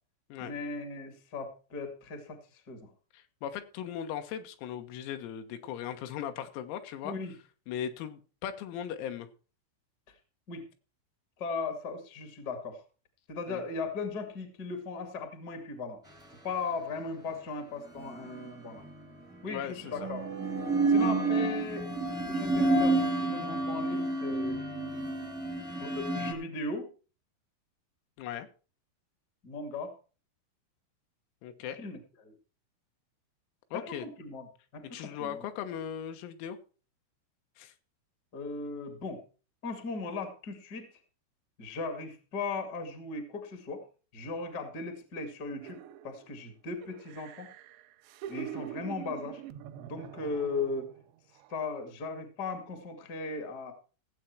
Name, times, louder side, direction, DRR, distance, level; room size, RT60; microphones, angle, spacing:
voice 1, 0.4-2.9 7.0-7.3 10.5-10.6 11.4-12.8 13.3-16.0 16.4-18.8 19.4-20.2 20.9-21.9 22.2-24.6 25.8-26.9 29.4-29.9 31.7-32.3 33.7-34.5 34.7-35.4 38.3-39.2 39.6-40.9 41.6-43.8 44.1-45.8 46.0-47.5 48.3-49.4 49.8-50.9 51.5-53.7, left 3 dB, 65° left, 8 dB, 0.9 m, -37 dB
voice 2, 3.1-7.1 7.7-9.3 13.5-13.6 19.4-20.1 28.2-28.5 31.4-31.8 33.7-34.1 34.9-36.6 37.6-37.7, left 9 dB, 85° left, 8 dB, 3.9 m, -38 dB
sound 1, 18.0-18.9 19.8-26.3, right 2 dB, 5° right, 0.3 m, -29 dB
sound 2, 45.6-46.4 46.8-51.0 51.4-51.5, right 11 dB, 85° right, 2.4 m, -44 dB
16.0 x 7.9 x 4.6 m, 0.35 s
omnidirectional pair, 6.0 m